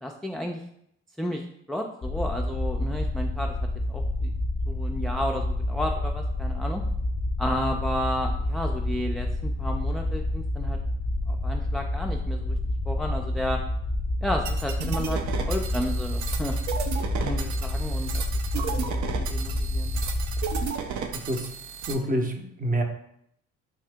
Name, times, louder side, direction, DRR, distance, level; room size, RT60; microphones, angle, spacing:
voice 1, 0.0-0.6 1.2-3.5 3.9-4.3 4.7-6.8 7.4-10.8 11.3-12.6 12.9-13.6 14.2-16.6 17.2-18.2 18.6-19.0 19.3-19.9, equal, ahead, 1 dB, 0.3 m, -32 dB
sound 1, 2.0-20.7, left 1 dB, 30° left, 0.7 m, -28 dB
sound 2, 14.5-21.9, right 7 dB, 65° right, 0.5 m, -34 dB
voice 2, 21.1-21.5 21.9-22.8, right 1 dB, 25° right, 4 dB, 0.7 m, -27 dB
3.6 x 2.7 x 3.4 m, 0.72 s
supercardioid pair, 60°, 32 cm